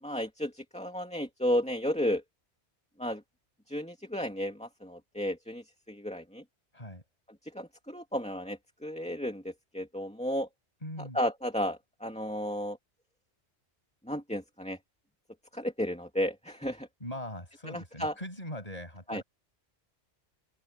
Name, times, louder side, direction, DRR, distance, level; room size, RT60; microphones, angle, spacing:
voice 1, 0.0-2.2 3.0-3.2 3.7-6.4 7.4-10.5 11.0-12.8 14.0-14.8 15.5-16.9 17.7-18.1 19.1-19.2, equal, 5° left, 2.5 m, -33 dB
voice 2, 10.8-11.2 17.0-19.2, left 1 dB, 35° left, 7.0 m, -41 dB
omnidirectional pair, 1.1 m